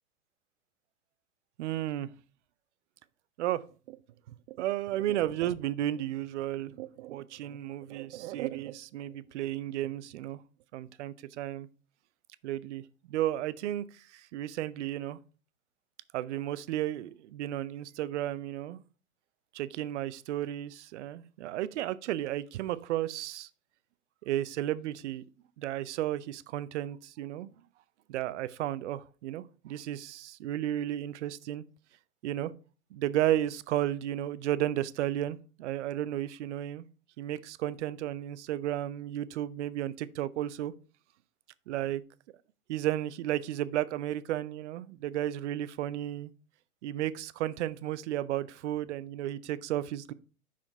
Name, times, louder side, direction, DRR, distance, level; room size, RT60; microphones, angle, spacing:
voice 1, 1.6-2.1 3.4-4.0 4.5-10.4 10.7-11.7 12.4-15.2 16.1-18.8 19.5-23.5 24.2-25.2 25.6-27.5 28.1-31.6 32.2-32.5 32.9-36.8 37.2-40.7 41.7-42.0 42.7-46.3 46.8-50.1, right 13 dB, 50° right, 0.5 m, -33 dB
5.8 x 4.9 x 4.4 m
hypercardioid pair, 110°, 46 cm